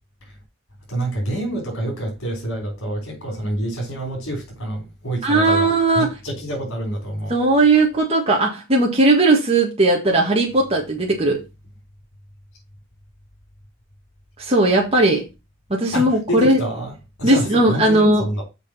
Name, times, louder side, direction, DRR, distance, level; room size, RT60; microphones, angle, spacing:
voice 1, 0.9-5.7 6.0-7.3 15.9-16.9 17.2-18.4, right 1 dB, 80° left, 3.7 m, -27 dB
voice 2, 5.2-6.1 7.3-11.4 14.4-15.2 15.7-16.6 17.2-18.3, right 2 dB, 30° right, 1.7 m, -17 dB
6.8 x 5.0 x 5.7 m
head